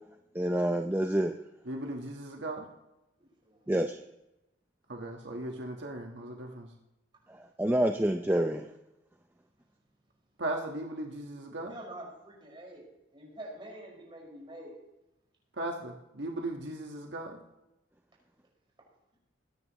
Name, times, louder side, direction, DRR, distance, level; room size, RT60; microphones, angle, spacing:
voice 1, 0.3-1.3 3.7-4.0 7.6-8.7, right 1 dB, 10° right, 5 dB, 0.5 m, -27 dB
voice 2, 1.6-2.7 4.9-6.7 10.4-11.7 15.6-17.4, right 1 dB, 70° right, 1 dB, 1.4 m, -37 dB
voice 3, 3.2-3.7 11.7-12.9 13.1-14.7, right 1 dB, 25° right, -3 dB, 5.3 m, -46 dB
21.5 x 10.0 x 3.1 m, 0.93 s
head